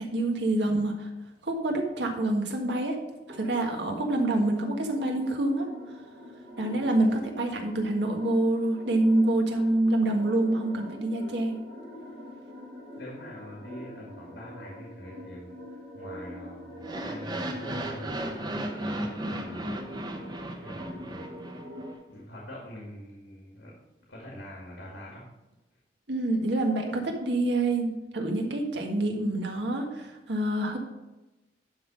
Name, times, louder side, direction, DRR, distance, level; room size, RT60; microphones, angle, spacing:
voice 1, 0.1-1.1 1.4-3.0 3.4-5.7 6.6-11.6 26.1-30.8, right 2 dB, 80° right, 2 dB, 1.6 m, -26 dB
sound 1, 3.3-21.9, equal, 55° right, 1.6 m, -45 dB
voice 2, 13.0-20.0 20.6-21.2 22.1-23.8 24.1-25.3, equal, 85° left, -3 dB, 2.1 m, -44 dB
sound 2, 16.8-21.9, right 1 dB, 20° right, 0.8 m, -35 dB
11.5 x 3.8 x 6.2 m, 1.0 s
head